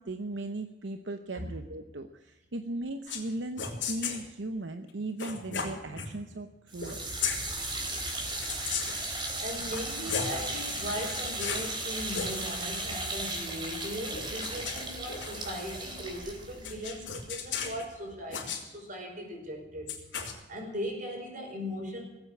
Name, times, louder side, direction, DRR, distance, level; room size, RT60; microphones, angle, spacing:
voice 1, 0.0-7.0, right 2 dB, 70° right, 8 dB, 0.8 m, -37 dB
sound 1, 3.1-3.3 3.6-4.2 5.2-6.1 6.8-7.4 8.4-9.1 9.6-10.4 10.9-11.7 12.0-12.3 14.1-15.6 16.6-17.8 18.3-18.6 19.9-20.3, left 6 dB, 80° left, 3.4 m, -35 dB
sound 2, 6.7-17.8, right 2 dB, 25° right, 3.5 m, -36 dB
voice 2, 8.6-9.0 9.4-19.9 20.5-22.0, equal, 45° right, 2 dB, 5.0 m, -38 dB
18.5 x 8.8 x 8.6 m, 1.1 s
head